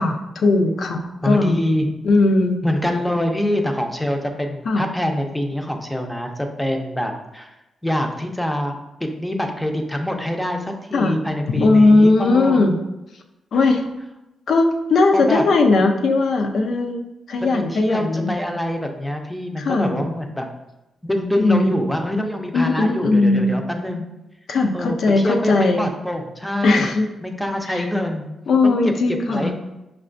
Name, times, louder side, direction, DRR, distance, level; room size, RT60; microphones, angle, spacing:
voice 1, 0.0-1.6 2.0-2.6 4.7-4.8 10.9-11.2 11.6-12.7 13.5-13.8 14.5-17.0 17.3-18.3 19.6-20.0 21.4-21.7 22.5-23.6 24.5-25.9 26.6-27.1 27.7-27.9 28.5-29.5, left 3 dB, 70° left, 4 dB, 0.4 m, -18 dB
voice 2, 1.2-1.9 2.6-7.5 7.8-8.7 9.0-12.6 15.1-15.4 17.5-20.5 21.0-24.1 24.7-26.9 27.2-28.3 28.6-29.5, left 1 dB, 5° left, 3 dB, 0.5 m, -25 dB
5.5 x 2.2 x 2.5 m, 0.95 s
cardioid pair, 75°, 0 cm